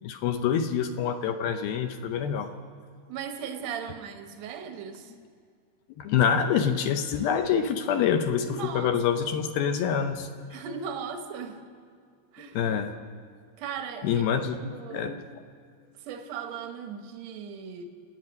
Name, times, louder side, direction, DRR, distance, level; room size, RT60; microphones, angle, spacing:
voice 1, 0.0-2.5 6.0-10.3 12.5-13.0 14.0-15.4, left 7 dB, 75° left, 7 dB, 2.4 m, -26 dB
voice 2, 3.1-5.1 8.5-8.9 10.5-11.6 12.3-12.6 13.6-14.2 14.6-15.2 16.0-17.9, right 7 dB, 70° right, 6 dB, 1.7 m, -37 dB
27.5 x 9.3 x 5.3 m, 2.3 s
omnidirectional pair, 4.6 m